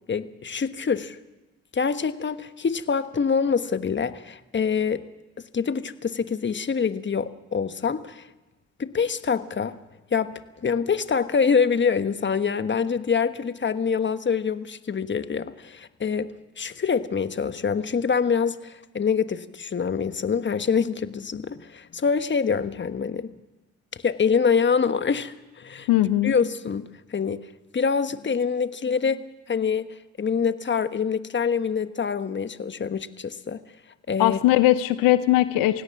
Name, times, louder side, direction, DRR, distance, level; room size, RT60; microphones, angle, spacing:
voice 1, 0.1-1.2 1.7-5.1 5.5-8.3 8.8-9.8 10.1-10.3 10.6-23.3 24.0-25.9 26.2-27.4 27.7-29.9 30.2-33.6 34.1-34.4, left 6 dB, 35° left, 11 dB, 1.3 m, -25 dB
voice 2, 25.9-26.3 34.2-35.8, left 15 dB, 75° left, 13 dB, 0.8 m, -19 dB
28.0 x 17.0 x 6.0 m, 1.1 s
hypercardioid pair, 55°, 34 cm